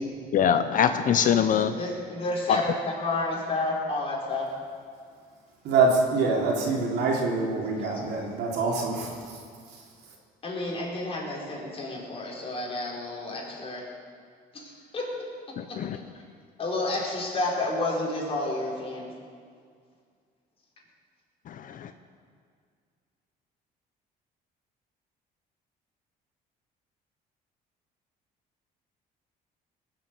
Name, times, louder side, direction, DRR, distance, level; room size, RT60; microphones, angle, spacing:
voice 1, 0.3-1.8 2.5-2.6 15.6-16.0 21.5-21.9, left 8 dB, 50° left, 9 dB, 0.7 m, -23 dB
voice 2, 1.8-4.5 7.8-8.0 10.4-13.8 14.5-15.1 15.7-16.0 16.6-19.1, left 2 dB, 35° left, -3 dB, 4.5 m, -31 dB
voice 3, 5.6-9.2, right 3 dB, 80° right, -1 dB, 3.3 m, -25 dB
19.5 x 7.7 x 8.3 m, 2.1 s
cardioid pair, 110°, 17 cm